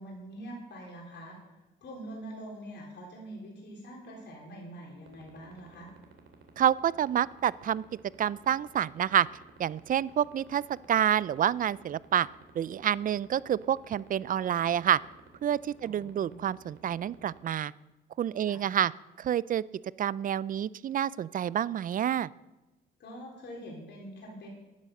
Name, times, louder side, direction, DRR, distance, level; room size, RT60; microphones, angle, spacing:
voice 1, 0.0-1.4 1.8-5.9 15.8-16.4 18.4-18.6 23.0-24.5, right 1 dB, 60° left, -2 dB, 3.9 m, -44 dB
sound 1, 5.1-17.4, right 8 dB, 70° right, 2.5 m, -53 dB
voice 2, 6.6-7.8 8.2-9.3 9.6-10.6 10.9-12.3 12.6-15.0 15.4-17.7 18.2-18.9 19.2-19.6 20.0-22.3, right 10 dB, 45° right, 21 dB, 0.4 m, -28 dB
11.0 x 9.4 x 6.6 m, 1.0 s
cardioid pair, 90°, 20 cm